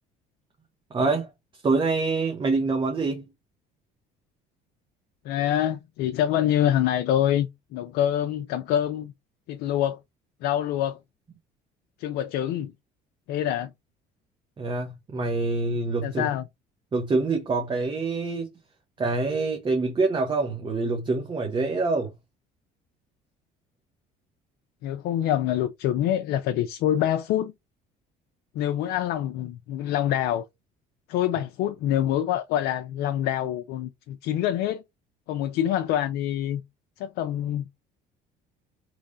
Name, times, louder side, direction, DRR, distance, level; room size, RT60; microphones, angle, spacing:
voice 1, 0.9-1.3 1.6-3.3 14.6-16.3 16.9-18.5 19.0-22.1, right 3 dB, 30° right, 0.8 m, -25 dB
voice 2, 5.2-9.1 9.5-10.0 10.4-11.0 12.0-12.7 13.3-13.7 16.0-16.5 24.8-27.5 28.5-30.4 31.1-34.8 35.3-36.6 37.0-37.7, left 11 dB, 70° left, 0.5 m, -26 dB
3.1 x 2.6 x 3.7 m
supercardioid pair, 95°, 17 cm